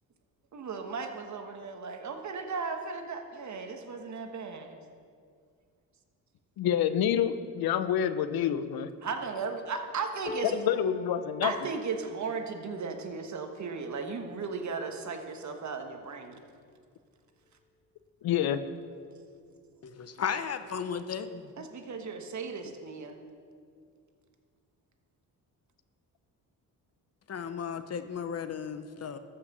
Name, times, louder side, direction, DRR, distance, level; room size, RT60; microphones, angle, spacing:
voice 1, 0.5-4.8 9.0-10.6 11.4-16.4 21.6-23.2, right 4 dB, 50° right, 5 dB, 1.3 m, -36 dB
voice 2, 6.6-8.9 10.4-11.5 18.2-18.6, left 9 dB, 80° left, 12 dB, 0.7 m, -27 dB
sound 1, 10.3-16.4 17.0-17.2 17.5-18.2 19.2-19.3, left 3 dB, 20° left, 0.4 m, -47 dB
voice 3, 19.8-21.6 27.3-29.2, left 7 dB, 45° left, 11 dB, 0.7 m, -35 dB
13.5 x 5.8 x 6.8 m, 2.2 s
cardioid pair, 95°, 36 cm